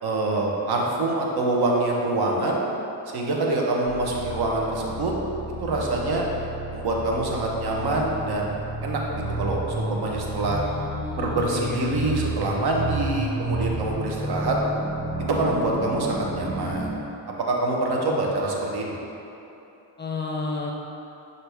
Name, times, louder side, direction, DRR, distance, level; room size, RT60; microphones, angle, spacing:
voice 1, 0.0-2.7 3.1-5.1 5.6-6.3 6.7-10.6 11.2-14.6 15.3-16.9 17.3-18.9, right 2 dB, 60° right, -1 dB, 0.9 m, -25 dB
sound 1, 3.8-16.9, right 2 dB, 85° right, 1.3 m, -32 dB
voice 2, 10.4-12.2 13.0-13.2 18.0-18.3 20.0-20.7, left 4 dB, 25° left, -1 dB, 0.5 m, -32 dB
5.9 x 2.6 x 3.4 m, 3.0 s
supercardioid pair, 60°, 44 cm